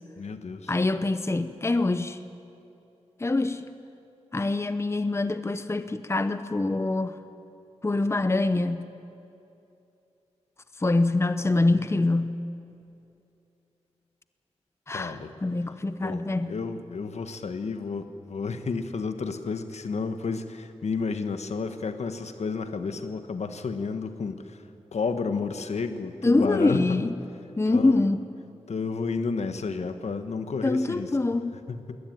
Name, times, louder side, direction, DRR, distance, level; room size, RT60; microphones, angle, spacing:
voice 1, 0.2-0.7 14.9-15.3 16.0-24.6 24.9-26.8 27.7-28.0 28.7-31.1 31.7-32.0, left 4 dB, 75° left, 8 dB, 1.4 m, -31 dB
voice 2, 0.7-2.2 3.2-3.6 4.3-7.2 7.8-8.9 10.8-12.4 14.9-16.6 26.2-27.2 27.6-28.2 30.6-31.6, left 2 dB, 25° left, 11 dB, 0.8 m, -25 dB
21.5 x 18.0 x 9.2 m, 2.7 s
wide cardioid pair, 75°, 12 cm